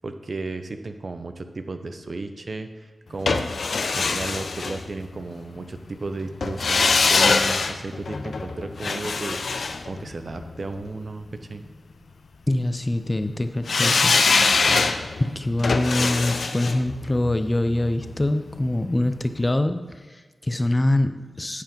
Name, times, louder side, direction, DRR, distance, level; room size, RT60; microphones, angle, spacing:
voice 1, 0.0-3.5 3.9-9.6 9.9-11.6, right 3 dB, 60° right, 8 dB, 0.7 m, -34 dB
sound 1, 3.3-5.4 6.4-10.7 13.7-18.7 19.0-19.1, left 4 dB, 80° left, 0.5 m, -23 dB
voice 2, 12.5-14.5 15.2-21.6, left 1 dB, 30° left, 10 dB, 0.6 m, -24 dB
10.5 x 4.9 x 5.3 m, 1.3 s
cardioid pair, 45°, 0 cm